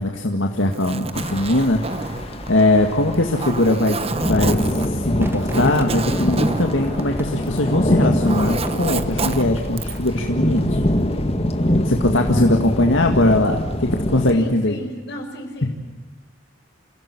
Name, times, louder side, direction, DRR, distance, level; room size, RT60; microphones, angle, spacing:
voice 1, 0.0-4.0 4.3-10.8 11.8-14.8, left 1 dB, 80° left, 3 dB, 2.0 m, -20 dB
Zipper (clothing), 0.6-7.7 8.0-10.1, right 3 dB, 30° right, 1.1 m, -29 dB
sound 1, 1.1-14.3, left 1 dB, 30° left, 1.9 m, -24 dB
Crowd / Fireworks, 5.2-10.6 10.9-11.0, equal, 10° right, 1.5 m, -37 dB
voice 2, 14.3-15.7, left 1 dB, 60° left, 3 dB, 5.9 m, -34 dB
28.0 x 17.0 x 9.8 m, 1.2 s
head